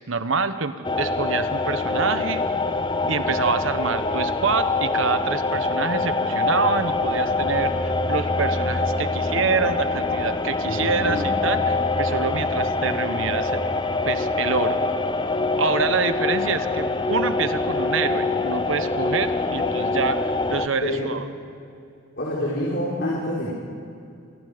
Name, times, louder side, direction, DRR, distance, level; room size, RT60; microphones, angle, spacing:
voice 1, 0.0-2.5 3.1-13.6 14.0-14.8 15.6-21.3, right 4 dB, 65° right, 11 dB, 1.1 m, -26 dB
sound 1, 0.8-20.7, left 3 dB, 20° left, 0.7 m, -24 dB
voice 2, 10.6-11.2 20.8-21.0 22.2-23.5, left 1 dB, 55° left, -6 dB, 4.5 m, -27 dB
28.0 x 21.5 x 5.1 m, 2.5 s
head